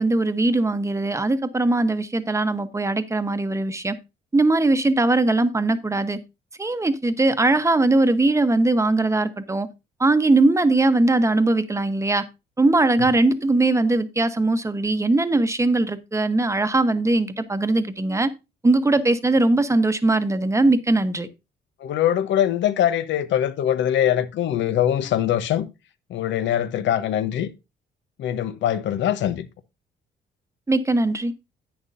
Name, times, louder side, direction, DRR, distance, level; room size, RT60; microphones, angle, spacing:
voice 1, 0.0-3.9 4.3-6.2 6.6-9.7 10.0-12.2 12.6-18.3 18.6-21.3 30.7-31.3, right 2 dB, 15° right, 1.0 m, -20 dB
voice 2, 21.8-25.7 26.1-27.5 28.2-29.5, left 10 dB, 75° left, 1.0 m, -22 dB
10.5 x 8.8 x 2.6 m
cardioid pair, 95°, 19 cm